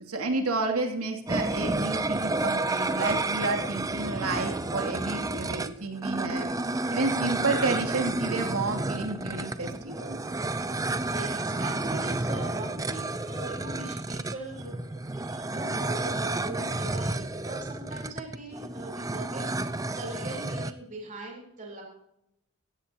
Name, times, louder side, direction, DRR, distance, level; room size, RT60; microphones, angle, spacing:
voice 1, 0.1-6.5 6.9-10.2 15.3-15.5, right 3 dB, 85° right, 2 dB, 2.9 m, -30 dB
sound 1, 1.3-20.7, right 2 dB, 15° right, 0.6 m, -31 dB
voice 2, 10.9-14.8 15.2-21.8, right 2 dB, 35° right, -2 dB, 4.2 m, -41 dB
17.0 x 15.5 x 3.0 m, 0.81 s
head